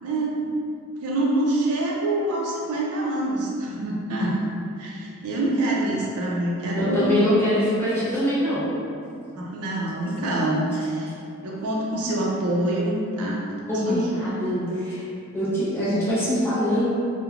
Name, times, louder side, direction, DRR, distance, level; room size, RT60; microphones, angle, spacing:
voice 1, 0.0-0.5 1.0-4.4 4.8-7.2 9.0-9.1 9.4-11.1 11.4-13.6 13.9-14.7, right 1 dB, 70° right, -3 dB, 0.4 m, -26 dB
voice 2, 6.8-8.6 13.7-15.1 15.3-16.9, equal, 10° left, -11 dB, 0.7 m, -23 dB
2.9 x 2.1 x 2.4 m, 2.5 s
head